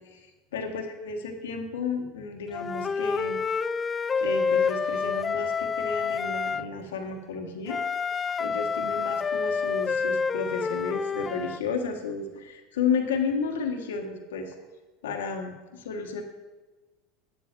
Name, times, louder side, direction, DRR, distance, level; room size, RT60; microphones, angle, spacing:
voice 1, 0.5-3.4 4.2-7.8 8.4-14.5 15.0-16.2, left 5 dB, 85° left, 4 dB, 1.5 m, -32 dB
Wind instrument woodwind instrument, 2.5-6.7 7.7-11.6, left 5 dB, 25° left, 0.4 m, -28 dB
9.4 x 8.2 x 6.8 m, 1.2 s
hypercardioid pair, 90°, 0 cm